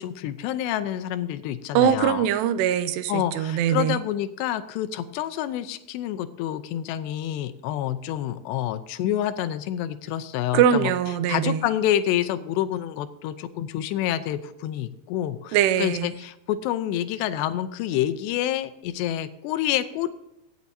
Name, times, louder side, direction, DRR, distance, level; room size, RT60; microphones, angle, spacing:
voice 1, 0.0-2.2 3.1-10.9 11.3-20.1, left 12 dB, 90° left, 11 dB, 2.9 m, -28 dB
voice 2, 1.7-4.0 10.5-11.6 15.5-16.1, right 9 dB, 85° right, 12 dB, 2.8 m, -22 dB
17.5 x 8.3 x 2.7 m, 0.85 s
omnidirectional pair, 4.8 m